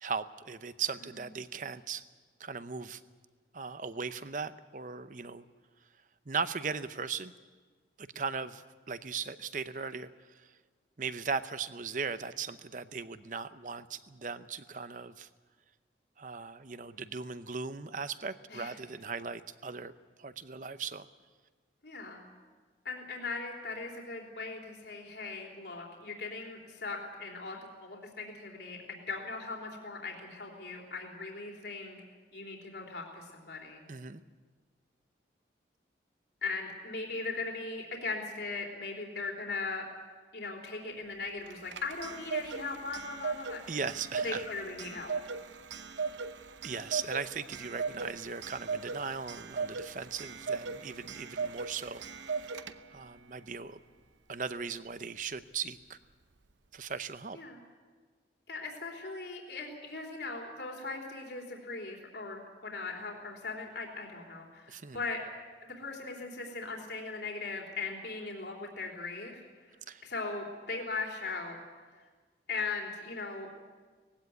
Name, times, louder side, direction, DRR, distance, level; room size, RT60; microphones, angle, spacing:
voice 1, 0.0-2.0 2.4-3.0 3.5-5.4 6.3-7.3 8.0-10.1 10.4-10.5 11.0-15.3 16.2-19.9 20.2-21.1 33.9-34.2 43.7-44.5 46.6-52.0 52.9-53.8 54.3-56.0 56.7-57.4 64.7-65.0 69.9-70.0, right 5 dB, 45° right, 12 dB, 0.7 m, -38 dB
voice 2, 21.8-22.3 22.9-32.0 32.3-33.8 36.4-39.9 40.3-43.6 44.2-45.1 57.3-57.6 58.5-65.2 65.6-69.4 70.0-71.6 72.5-73.5, left 3 dB, 65° left, 0 dB, 3.5 m, -39 dB
Clock, 41.5-53.1, right 5 dB, 85° right, 0.8 m, -38 dB
19.0 x 16.0 x 9.5 m, 1.4 s
head